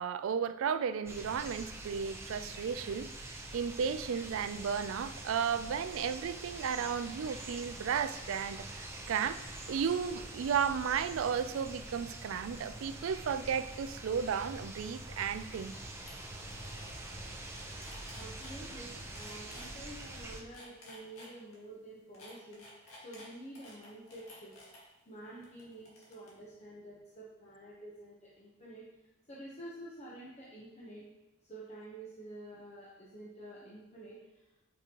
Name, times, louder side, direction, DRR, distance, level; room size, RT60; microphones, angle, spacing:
voice 1, 0.0-9.4 9.7-15.7, right 7 dB, 70° right, 12 dB, 0.3 m, -34 dB
sound 1, 1.1-20.4, right 2 dB, 10° right, 0.6 m, -45 dB
sound 2, 16.1-16.2 16.4-17.1 17.4-18.6 19.2-19.7 20.4-21.6 22.1-24.8 25.4-26.3, left 1 dB, 85° left, 1.9 m, -53 dB
voice 2, 18.1-22.7 23.0-24.5 25.1-28.8 29.3-31.0 31.4-34.5, right 1 dB, 30° left, -6 dB, 1.0 m, -49 dB
8.2 x 5.3 x 3.0 m, 1.0 s
head